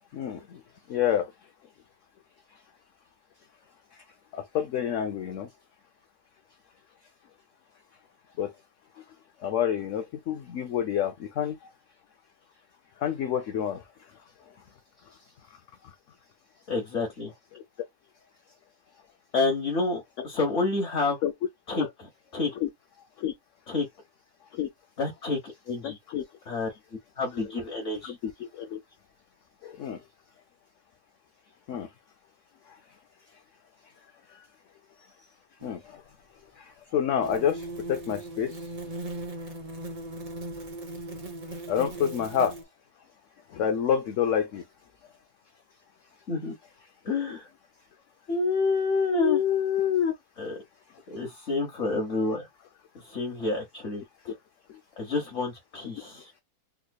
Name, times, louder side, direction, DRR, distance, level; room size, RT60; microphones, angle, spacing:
voice 1, 0.1-0.6 0.9-1.3 4.3-5.5 8.4-8.5 9.4-11.6 13.0-13.8 17.5-17.6 20.2-20.3 21.2-21.3 21.8-21.9 22.6-22.7 23.2-23.3 24.5-24.7 25.8-26.2 27.3-27.4 28.0-28.8 29.6-30.0 31.7-31.9 35.6-35.8 36.9-38.6 41.7-42.5 43.5-44.6 47.3-47.4 49.2-50.1, left 9 dB, 70° left, 0.7 m, -28 dB
voice 2, 16.7-17.3 19.3-21.2 21.7-22.5 23.7-23.8 25.0-25.4 25.7-26.0 26.5-26.7 27.2-28.1 46.3-46.5 47.0-47.5 48.3-49.4 50.4-50.6 51.1-52.5 53.0-54.0 55.0-56.3, left 3 dB, 50° left, 1.2 m, -28 dB
sound 1, 35.6-35.7 37.2-42.6, right 2 dB, 70° right, 0.3 m, -38 dB
3.5 x 3.1 x 2.2 m
omnidirectional pair, 1.8 m